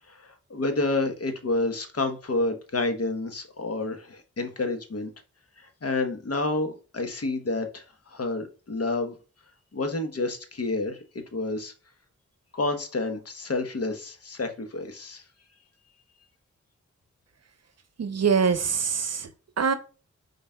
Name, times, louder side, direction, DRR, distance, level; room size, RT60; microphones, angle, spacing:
voice 1, 0.1-5.1 5.6-9.1 9.7-11.7 12.5-15.2, left 2 dB, 50° left, 1.1 m, -29 dB
voice 2, 18.0-19.3 19.6-19.7, right 6 dB, 55° right, 0.7 m, -24 dB
5.3 x 3.9 x 2.3 m
cardioid pair, 40°, 30 cm